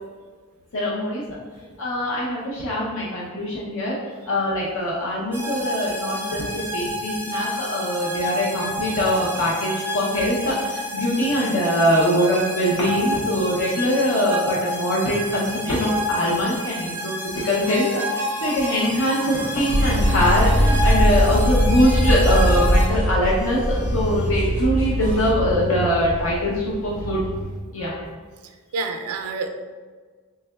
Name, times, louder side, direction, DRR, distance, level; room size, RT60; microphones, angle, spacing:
voice 1, 0.7-1.2 1.8-3.9 4.3-17.1 17.4-27.2 27.7-28.1, equal, 65° left, -5 dB, 0.6 m, -22 dB
sound 1, 5.3-22.9, left 1 dB, 10° right, 0.4 m, -29 dB
sound 2, 17.3-20.8 21.2-25.3, equal, 90° left, 1.3 m, -39 dB
sound 3, 19.7-27.6, equal, 30° left, 0.7 m, -21 dB
voice 2, 28.7-29.5, right 4 dB, 85° right, 5 dB, 0.4 m, -28 dB
3.6 x 3.2 x 2.2 m, 1.5 s
head